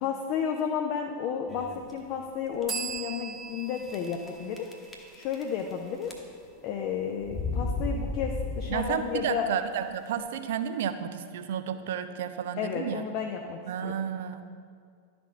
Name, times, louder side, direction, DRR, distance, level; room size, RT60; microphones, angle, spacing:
voice 1, 0.0-4.7 5.1-6.1 6.6-9.5 12.6-13.9, left 7 dB, 40° left, 2 dB, 0.5 m, -32 dB
sound 1, 1.5-1.9 2.5-2.6 2.9-3.0 3.9-4.3 4.6-5.7 6.0-6.6 7.2-9.2, left 3 dB, 10° left, 1.1 m, -34 dB
sound 2, 2.7-6.2, right 6 dB, 20° right, 0.7 m, -40 dB
voice 2, 8.7-13.0 13.7-14.4, right 9 dB, 55° right, 10 dB, 0.4 m, -32 dB
11.5 x 4.2 x 4.3 m, 2.1 s
figure-of-eight pair, 90°, 0 cm